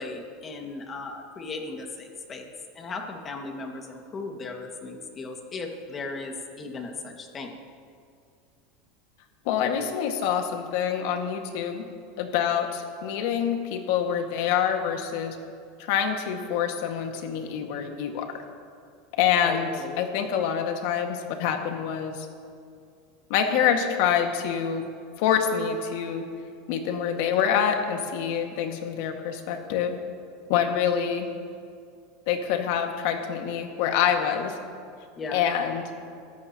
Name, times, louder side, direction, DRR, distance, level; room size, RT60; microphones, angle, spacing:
voice 1, 0.0-2.5 2.8-7.5 19.4-20.0 28.5-28.9 30.6-30.8 35.2-35.4, left 3 dB, 25° left, 3 dB, 1.9 m, -37 dB
voice 2, 9.5-11.9 12.2-15.4 15.8-18.4 19.2-19.7 20.0-22.3 23.3-24.9 25.2-26.2 26.7-30.0 30.5-31.3 32.3-34.5 35.3-35.9, left 8 dB, 65° left, 4 dB, 1.8 m, -26 dB
24.0 x 13.5 x 3.0 m, 2.3 s
supercardioid pair, 135°, 0 cm